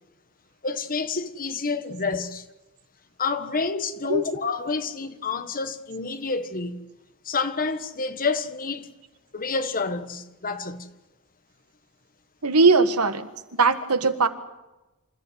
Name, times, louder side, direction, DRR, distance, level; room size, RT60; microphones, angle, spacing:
voice 1, 0.6-2.4 3.2-6.8 7.2-8.9 9.3-10.9, left 4 dB, 40° left, 1.4 m, -28 dB
voice 2, 12.4-13.3 13.6-14.3, right 3 dB, 85° right, 1.7 m, -19 dB
27.0 x 14.5 x 9.5 m
head